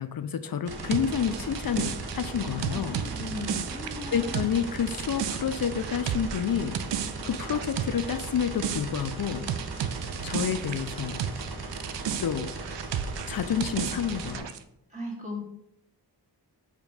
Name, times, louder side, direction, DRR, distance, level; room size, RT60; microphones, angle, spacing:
voice 1, 0.0-3.0 4.1-6.8 7.2-9.5 10.2-11.2 12.2-12.5 13.3-14.5, left 8 dB, 60° left, 11 dB, 0.5 m, -29 dB
sound 1, 0.7-14.4, right 3 dB, 65° right, 1.0 m, -38 dB
sound 2, 0.9-11.5 11.7-14.6, right 9 dB, 85° right, 0.5 m, -34 dB
voice 2, 2.7-4.6 14.9-15.4, left 1 dB, 15° right, -3 dB, 2.0 m, -37 dB
5.1 x 4.1 x 4.9 m, 0.82 s
wide cardioid pair, 65°, 41 cm